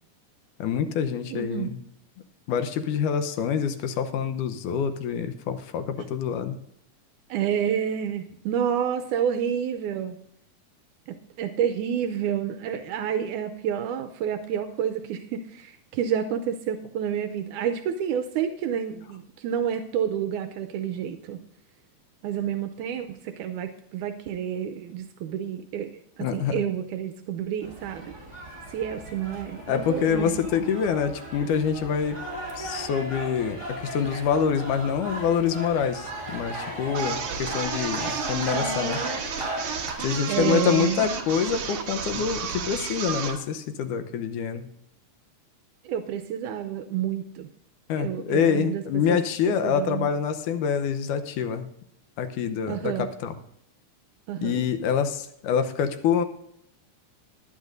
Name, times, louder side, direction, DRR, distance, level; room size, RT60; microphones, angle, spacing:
voice 1, 0.6-1.8 2.5-6.6 26.2-26.6 29.7-32.2 32.6-39.0 40.0-44.7 47.9-51.7 52.2-53.4 54.4-56.2, left 7 dB, 80° left, 8 dB, 2.3 m, -26 dB
voice 2, 1.3-1.7 7.3-10.2 11.1-21.4 22.2-25.9 26.2-28.1 28.7-30.3 40.3-41.0 45.8-47.5 48.0-49.2 49.5-50.1 52.7-53.1 54.3-54.6, right 8 dB, 85° right, 6 dB, 2.1 m, -29 dB
sound 1, 27.6-39.9, right 1 dB, 10° right, 3.6 m, -36 dB
sound 2, 36.9-43.4, right 6 dB, 55° right, 1.7 m, -32 dB
20.0 x 9.9 x 2.6 m, 0.76 s
omnidirectional pair, 3.7 m